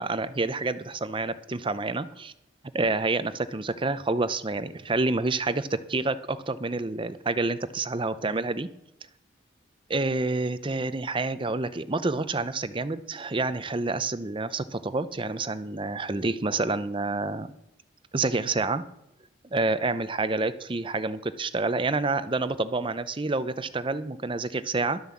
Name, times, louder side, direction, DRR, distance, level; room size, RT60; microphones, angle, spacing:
voice 1, 0.0-2.3 2.7-8.7 9.9-17.5 18.1-18.9 19.5-25.0, right 3 dB, 25° right, 13 dB, 0.6 m, -28 dB
12.0 x 7.5 x 7.2 m, 0.84 s
head